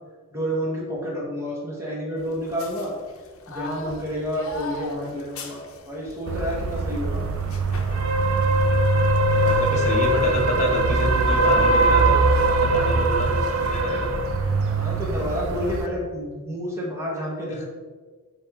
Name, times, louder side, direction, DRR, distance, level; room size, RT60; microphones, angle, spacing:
voice 1, 0.3-2.9 3.5-7.2 14.7-17.6, equal, 15° right, -4 dB, 1.3 m, -29 dB
sound 1, 2.2-13.8, left 2 dB, 70° left, 0.8 m, -41 dB
sound 2, 6.3-15.9, right 2 dB, 65° right, 0.6 m, -21 dB
voice 2, 9.1-13.3 13.6-14.2 17.5-17.6, equal, 30° left, -1 dB, 1.1 m, -28 dB
7.7 x 3.5 x 3.6 m, 1.5 s
head